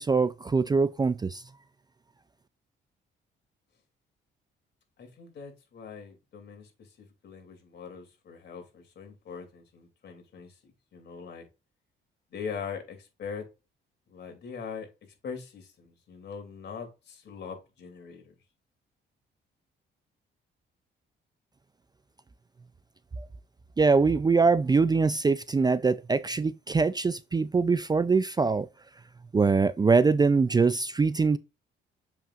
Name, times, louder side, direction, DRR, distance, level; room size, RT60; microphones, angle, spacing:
voice 1, 0.0-1.4 23.2-23.3 23.8-28.7 29.3-31.4, right 4 dB, 20° right, 0.4 m, -23 dB
voice 2, 5.0-6.7 7.0-10.5 10.9-11.5 12.3-13.5 14.1-14.9 15.2-18.3, left 6 dB, 60° left, 2.9 m, -41 dB
7.3 x 5.8 x 2.5 m
cardioid pair, 90°, 20 cm